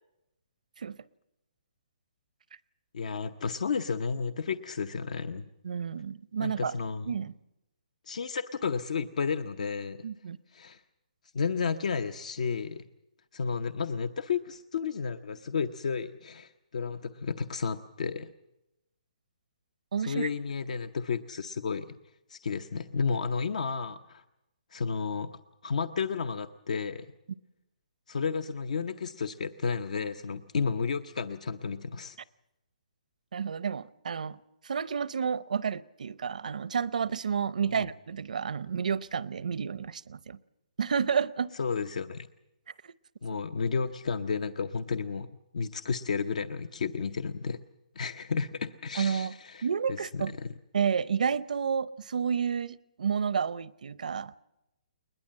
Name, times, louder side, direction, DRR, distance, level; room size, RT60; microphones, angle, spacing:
voice 1, 2.9-5.5 6.4-7.2 8.1-10.1 10.5-10.8 11.3-12.8 13.3-18.3 20.0-22.0 22.3-24.2 24.7-27.1 28.1-32.2 37.7-37.9 41.6-42.3 43.2-47.6 47.9-50.5, left 5 dB, 60° left, 11 dB, 0.8 m, -32 dB
voice 2, 5.6-6.7 7.1-7.3 10.0-10.4 19.9-20.3 33.3-34.4 34.6-40.4 40.8-41.5 42.8-42.9 48.9-49.3 49.6-50.3 50.7-54.3, right 6 dB, 70° right, 19 dB, 0.7 m, -30 dB
21.0 x 20.5 x 7.6 m, 0.93 s
hypercardioid pair, 165°, 4 cm